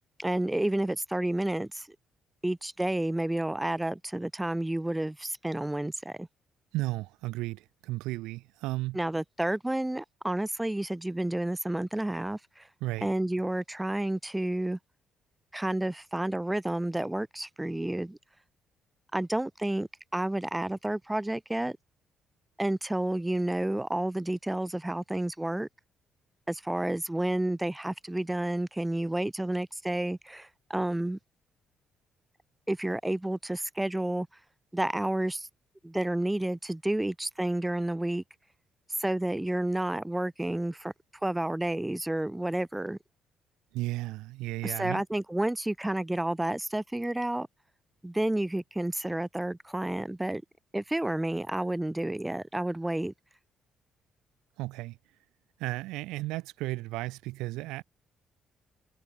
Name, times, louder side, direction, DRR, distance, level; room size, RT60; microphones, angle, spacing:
voice 1, 0.2-1.9 2.4-6.3 8.9-12.7 13.0-14.8 15.5-18.2 19.1-21.8 22.6-25.7 26.5-31.2 32.7-34.3 34.7-35.5 35.8-38.2 39.0-40.9 41.2-43.0 44.6-47.5 48.0-50.4 50.7-53.1, right 1 dB, 10° right, 1.4 m, -30 dB
voice 2, 6.7-9.0 12.8-13.1 43.7-45.0 54.6-55.0 55.6-57.8, right 19 dB, 80° right, 2.1 m, -34 dB
hypercardioid pair, 55°, 0 cm